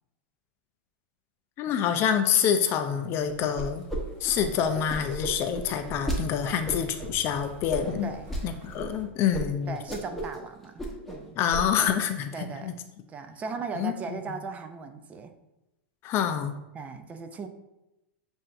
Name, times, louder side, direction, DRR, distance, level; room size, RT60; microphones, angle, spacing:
voice 1, 1.6-3.8 4.2-8.1 8.4-9.8 11.4-12.7 13.8-13.9 16.0-16.6, left 8 dB, 40° left, 7 dB, 0.4 m, -26 dB
sound 1, 3.0-9.1, right 4 dB, 35° right, 1.4 m, -48 dB
sound 2, 3.6-4.0 4.2-6.2 6.7-7.1 7.7-8.4 8.8-8.9 9.3-9.4 9.7-10.4 10.6-11.2 11.5-11.9, equal, 5° left, 1.0 m, -33 dB
voice 2, 9.7-11.4 12.3-12.8 13.1-15.3 16.7-17.5, right 4 dB, 20° right, 8 dB, 0.5 m, -38 dB
7.4 x 2.6 x 2.6 m, 0.95 s
hypercardioid pair, 125°, 6 cm